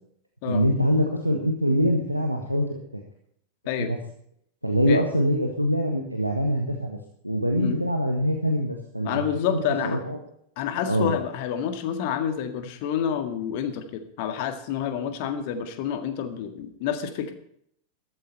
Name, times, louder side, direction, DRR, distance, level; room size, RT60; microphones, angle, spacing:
voice 1, 0.4-3.0 3.8-4.0 4.6-7.0 7.2-9.6 9.8-10.2 10.8-11.1, equal, 90° right, 3 dB, 1.5 m, -24 dB
voice 2, 9.0-10.0 10.6-17.3, left 8 dB, 45° left, 8 dB, 1.9 m, -28 dB
14.5 x 13.0 x 4.3 m, 0.67 s
figure-of-eight pair, 90°, 0 cm